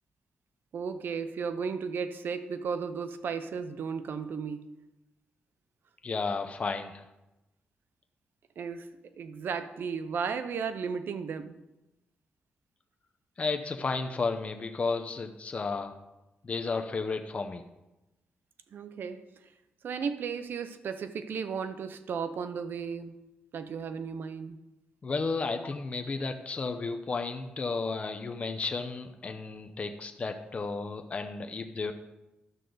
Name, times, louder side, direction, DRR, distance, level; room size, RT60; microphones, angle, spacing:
voice 1, 0.7-4.8 8.6-8.9 9.2-11.6 18.7-19.3 19.8-23.2 23.5-24.6, right 6 dB, 65° right, 0.6 m, -34 dB
voice 2, 6.0-7.0 13.4-15.9 16.4-17.6 25.0-31.9, left 4 dB, 35° left, 0.7 m, -33 dB
12.5 x 6.4 x 3.9 m
cardioid pair, 105°, 4 cm